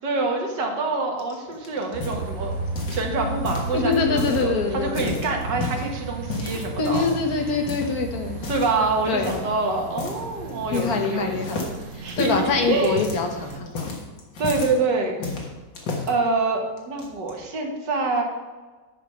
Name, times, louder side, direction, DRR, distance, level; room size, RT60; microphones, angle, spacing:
voice 1, 0.0-2.5 2.9-7.0 8.5-11.7 12.0-13.0 14.4-15.2 16.1-18.2, right 3 dB, 75° right, 2 dB, 2.0 m, -26 dB
sound 1, 1.2-3.1 3.4-4.4 4.8-5.9 6.3-7.3 7.7-7.9 8.4-8.8 9.2-9.5 10.0-10.2 10.5-11.1 11.4-14.8 15.2-16.1 16.8-17.3, left 3 dB, 80° left, 2.1 m, -33 dB
sound 2, 1.9-13.6, right 4 dB, 50° right, 1.2 m, -34 dB
voice 2, 3.7-5.3 6.8-8.4 9.1-9.4 10.7-11.6 11.9-13.9 15.2-15.4, left 4 dB, 60° left, 3 dB, 1.4 m, -25 dB
9.7 x 5.1 x 5.6 m, 1.3 s
omnidirectional pair, 1.9 m